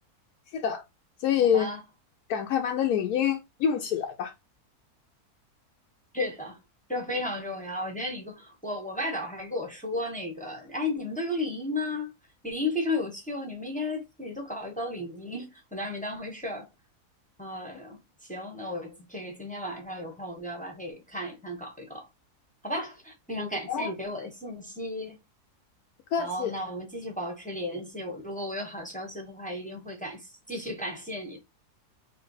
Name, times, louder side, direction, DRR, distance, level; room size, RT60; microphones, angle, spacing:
voice 1, 0.5-0.8 1.2-1.7 2.3-4.3 23.7-23.9 26.1-26.5, left 8 dB, 75° left, 1.1 m, -26 dB
voice 2, 6.1-6.6 6.9-12.1 12.4-16.7 17.4-22.1 22.6-25.2 26.2-31.4, left 1 dB, 5° left, 0.7 m, -34 dB
3.3 x 2.9 x 3.9 m
omnidirectional pair, 1.7 m